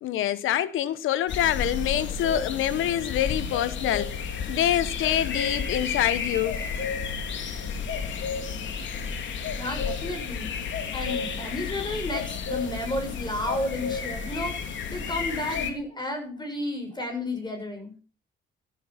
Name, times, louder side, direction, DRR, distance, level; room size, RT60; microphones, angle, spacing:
voice 1, 0.0-6.6, left 11 dB, 85° left, 1.3 m, -26 dB
sound 1, 1.3-15.7, left 5 dB, 70° left, 2.9 m, -32 dB
voice 2, 9.5-10.5 10.9-17.9, left 1 dB, 20° left, 7.3 m, -32 dB
15.5 x 13.5 x 5.9 m
cardioid pair, 90°, 20 cm